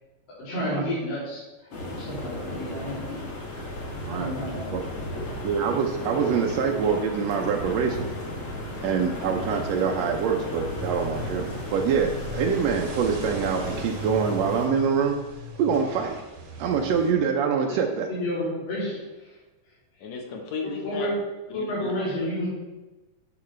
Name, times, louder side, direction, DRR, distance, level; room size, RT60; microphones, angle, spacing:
voice 1, 0.4-1.4 1.7-3.3 4.1-4.7 17.7-17.8 18.1-19.0 20.8-21.1 21.5-22.5, left 1 dB, 85° left, -9 dB, 4.6 m, -30 dB
sound 1, 1.7-14.7, left 1 dB, 45° left, 2.2 m, -34 dB
voice 2, 5.4-8.1 8.8-15.2 15.6-16.2 16.6-18.1, right 6 dB, 85° right, 2 dB, 1.5 m, -25 dB
sound 2, 10.6-17.1, right 1 dB, 65° right, 1.4 m, -38 dB
voice 3, 20.0-21.1 21.5-21.9, left 5 dB, 65° left, 2 dB, 2.1 m, -34 dB
10.5 x 6.0 x 3.2 m, 1.1 s
omnidirectional pair, 3.8 m